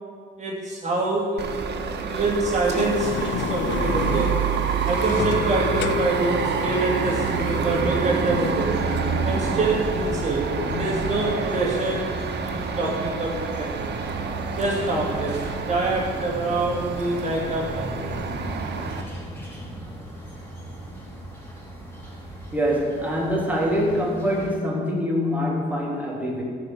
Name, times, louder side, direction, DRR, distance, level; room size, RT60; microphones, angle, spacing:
voice 1, 0.4-4.4 4.8-8.8 9.2-13.9 14.6-18.1, right 2 dB, 35° right, -3 dB, 2.6 m, -26 dB
sound 1, 1.4-19.0, right 5 dB, 60° right, 1.5 m, -27 dB
Sliding door, 2.6-7.8, left 11 dB, 65° left, 0.5 m, -32 dB
sound 2, 7.0-24.5, equal, 10° left, 4.0 m, -36 dB
voice 2, 22.5-26.4, equal, 10° right, -3 dB, 3.4 m, -24 dB
14.0 x 5.7 x 9.7 m, 2.1 s
cardioid pair, 90°, 20 cm